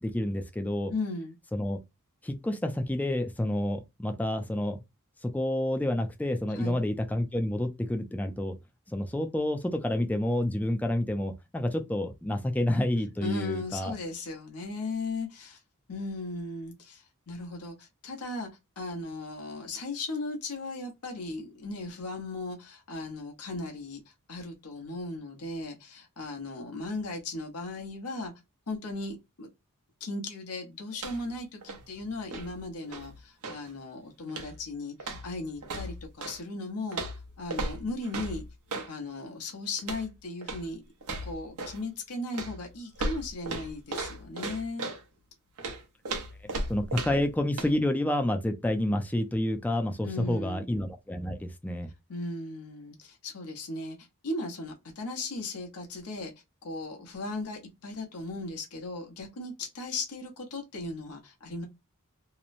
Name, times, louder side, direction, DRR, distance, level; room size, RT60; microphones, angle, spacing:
voice 1, 0.0-0.9 1.5-1.8 2.2-4.8 5.2-8.6 8.9-13.9 46.7-51.9, left 1 dB, 5° left, 0.3 m, -29 dB
voice 2, 0.9-1.4 6.5-6.8 13.2-15.6 15.9-18.5 18.8-24.0 24.3-28.3 28.7-29.5 30.0-37.0 37.4-38.4 38.9-40.8 41.2-44.9 50.0-50.7 52.1-54.0 54.2-56.3 56.6-61.7, left 2 dB, 90° left, 0.8 m, -37 dB
sound 1, 30.9-31.4 31.6-33.7 34.3-34.7 35.0-36.4 36.9-38.9 39.8-40.1 40.4-40.7 41.0-41.8 42.3-45.0 45.6-47.3 47.6-47.7, right 2 dB, 90° right, 0.7 m, -36 dB
2.9 x 2.0 x 2.5 m
head